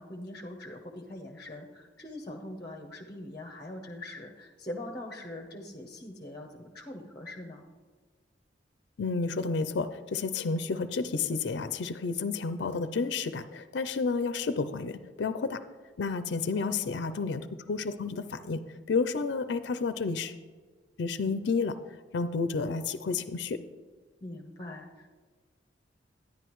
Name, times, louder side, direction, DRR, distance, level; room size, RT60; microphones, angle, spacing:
voice 1, 0.0-7.7 16.5-17.2 24.2-25.1, left 1 dB, 25° left, 2 dB, 0.8 m, -42 dB
voice 2, 9.0-15.6 16.0-18.6 18.9-20.3 21.0-21.8 22.1-23.6, left 4 dB, 70° left, 11 dB, 0.4 m, -31 dB
11.0 x 10.0 x 3.0 m, 1.4 s
head